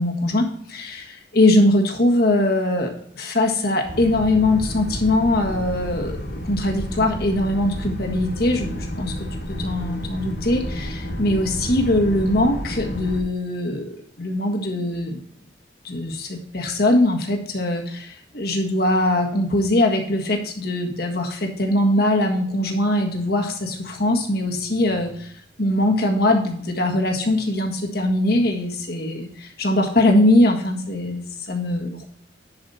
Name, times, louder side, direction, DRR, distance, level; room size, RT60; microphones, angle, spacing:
voice 1, 0.0-6.2 6.4-15.2 15.8-25.3 25.6-32.0, left 1 dB, 55° left, 2 dB, 1.6 m, -21 dB
Boat Water vehicle, 3.8-13.2, equal, 70° left, 2.4 m, -31 dB
10.5 x 5.0 x 4.1 m, 0.62 s
head